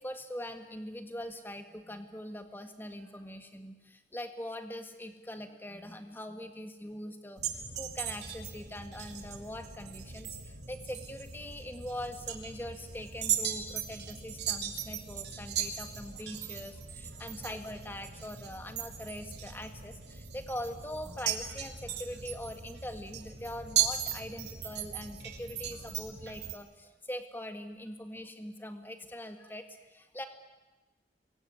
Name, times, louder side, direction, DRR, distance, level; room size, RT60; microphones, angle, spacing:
voice 1, 0.0-30.3, left 1 dB, 10° left, 7 dB, 1.9 m, -42 dB
sound 1, 7.4-26.5, right 9 dB, 75° right, 3.1 m, -38 dB
27.0 x 22.5 x 9.5 m, 1.1 s
head